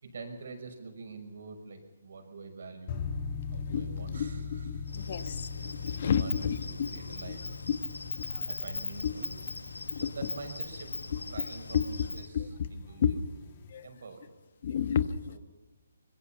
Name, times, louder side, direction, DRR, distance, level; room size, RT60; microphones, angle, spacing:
voice 1, 0.0-3.1 3.5-4.9 5.8-7.5 8.2-9.5 9.9-10.9 11.3-14.4 15.3-15.4, right 3 dB, 65° right, 5 dB, 6.0 m, -46 dB
sound 1, 2.9-13.7, left 5 dB, 35° left, 2.8 m, -41 dB
Insect, 4.9-12.3, left 3 dB, 90° left, 1.6 m, -40 dB
voice 2, 5.1-5.4 5.8-6.9 7.7-7.8 9.0-9.1 9.9-10.0 11.7-11.8 12.3-12.5 13.0-13.1 13.7-13.8 14.6-15.4, left 8 dB, 50° left, 13 dB, 1.2 m, -29 dB
24.5 x 21.5 x 5.8 m, 1.2 s
hypercardioid pair, 150°, 0 cm